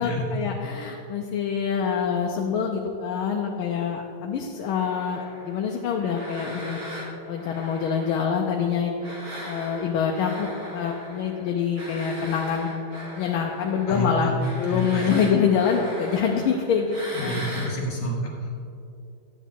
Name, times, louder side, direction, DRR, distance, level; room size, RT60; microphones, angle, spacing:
voice 1, 0.0-6.8 7.3-9.1 9.5-12.7 13.1-17.4, left 6 dB, 85° left, 1 dB, 1.5 m, -25 dB
sound 1, 4.7-8.7 9.0-17.7, equal, 50° right, 1.9 m, -39 dB
voice 2, 13.9-14.3 14.7-15.1 17.1-18.3, left 1 dB, 60° left, -2 dB, 1.7 m, -28 dB
10.5 x 8.2 x 3.6 m, 2.6 s
omnidirectional pair, 2.3 m